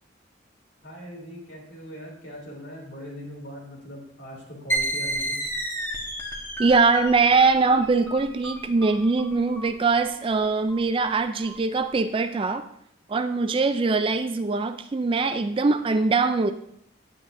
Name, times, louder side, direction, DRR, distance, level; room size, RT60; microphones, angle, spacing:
voice 1, 0.8-5.4, equal, 60° left, -1 dB, 2.8 m, -40 dB
sound 1, 4.7-11.9, right 1 dB, 15° left, 1.2 m, -32 dB
voice 2, 6.6-12.6 13.1-16.5, right 4 dB, 25° right, 10 dB, 0.3 m, -22 dB
9.7 x 8.8 x 2.6 m, 0.70 s
head